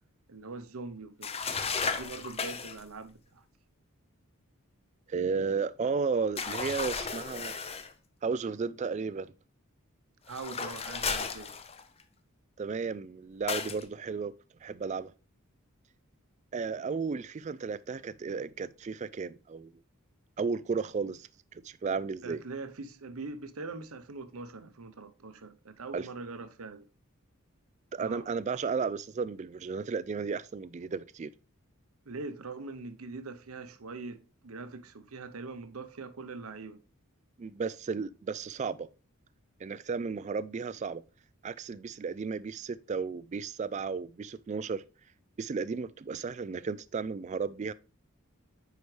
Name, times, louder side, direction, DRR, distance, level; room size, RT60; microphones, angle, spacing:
voice 1, 0.3-1.4 1.8-3.4 10.3-11.5 22.2-26.8 28.0-28.3 32.1-36.8, right 3 dB, 85° right, 0.8 m, -42 dB
sound 1, 1.2-2.8 6.4-7.9 10.3-12.0 13.5-13.8, left 5 dB, 30° left, 0.6 m, -34 dB
voice 2, 5.1-7.5 8.2-9.3 12.6-14.3 14.6-15.1 16.5-19.7 20.4-22.4 25.9-26.1 27.9-31.3 37.4-38.9 39.6-41.0 41.4-44.8 45.4-47.7, right 5 dB, 35° right, 0.3 m, -34 dB
9.3 x 4.8 x 3.2 m
head